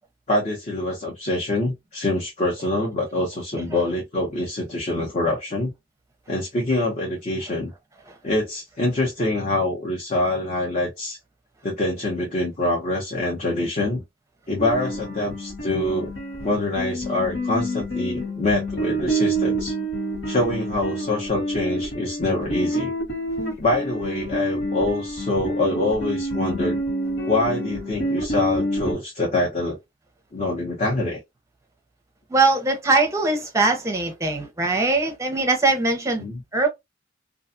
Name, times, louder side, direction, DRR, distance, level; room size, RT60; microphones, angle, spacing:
voice 1, 0.3-5.7 6.3-7.7 8.2-11.2 11.6-14.0 14.5-16.1 16.4-19.7 20.3-22.9 23.6-26.8 27.2-29.8 30.3-31.2 36.2-36.4, left 2 dB, 40° left, 0.7 m, -25 dB
sound 1, 14.6-28.9, right 1 dB, 75° left, 1.3 m, -28 dB
voice 2, 32.3-36.2 36.5-36.7, right 3 dB, 15° right, 0.6 m, -21 dB
2.5 x 2.2 x 2.6 m
head